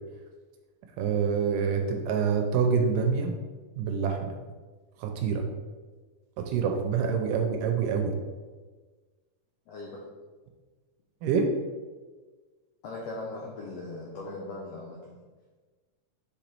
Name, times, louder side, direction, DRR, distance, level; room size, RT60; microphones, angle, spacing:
voice 1, 1.0-3.4 3.8-4.3 5.0-5.5 6.4-8.2 11.2-11.5, right 6 dB, 80° right, 4 dB, 2.1 m, -26 dB
voice 2, 9.7-10.0 12.8-15.2, left 2 dB, 80° left, -3 dB, 1.5 m, -39 dB
5.3 x 5.1 x 4.4 m, 1.4 s
omnidirectional pair, 4.1 m